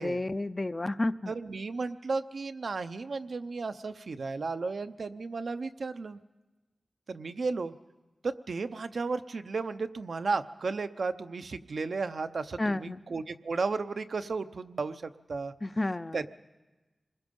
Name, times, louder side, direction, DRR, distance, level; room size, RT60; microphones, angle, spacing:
voice 1, 0.0-1.3 12.6-13.0 15.6-16.2, left 2 dB, 35° left, 12 dB, 0.6 m, -31 dB
voice 2, 1.3-6.2 7.1-7.7 8.2-15.5 16.1-16.3, right 4 dB, 80° right, 9 dB, 0.7 m, -34 dB
26.5 x 20.5 x 5.4 m, 1.1 s
wide cardioid pair, 70°, 0 cm